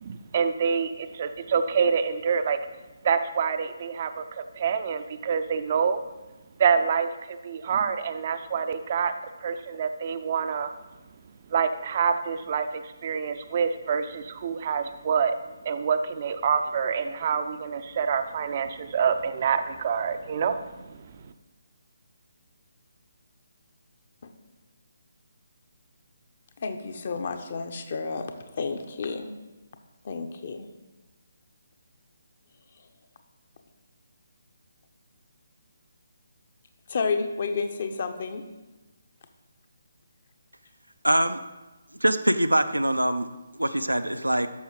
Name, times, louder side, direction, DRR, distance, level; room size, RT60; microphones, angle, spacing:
voice 1, 0.0-2.6 3.0-6.0 6.6-9.1 9.4-10.7 11.5-15.4 15.6-21.0, right 6 dB, 35° right, 9 dB, 0.5 m, -26 dB
voice 2, 26.6-29.3 30.0-30.6 36.9-38.4, left 4 dB, 40° left, 7 dB, 0.9 m, -31 dB
voice 3, 41.0-41.4 42.0-44.5, right 1 dB, 85° right, 10 dB, 0.6 m, -24 dB
11.5 x 7.0 x 3.9 m, 1.1 s
figure-of-eight pair, 145°, 0 cm